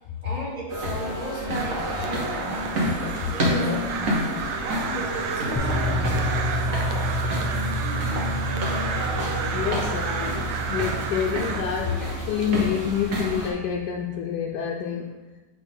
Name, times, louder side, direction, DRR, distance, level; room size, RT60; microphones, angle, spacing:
voice 1, 0.2-6.3, right 1 dB, 25° right, -12 dB, 1.2 m, -35 dB
sound 1, 0.7-13.5, equal, 50° right, 1.3 m, -30 dB
Crow, 1.5-11.6, right 6 dB, 75° right, 1.3 m, -32 dB
sound 2, 5.5-13.7, equal, 30° left, 0.5 m, -30 dB
voice 2, 6.9-7.5 8.8-15.1, left 8 dB, 75° left, -1 dB, 1.0 m, -28 dB
7.0 x 4.4 x 3.5 m, 1.1 s
omnidirectional pair, 2.2 m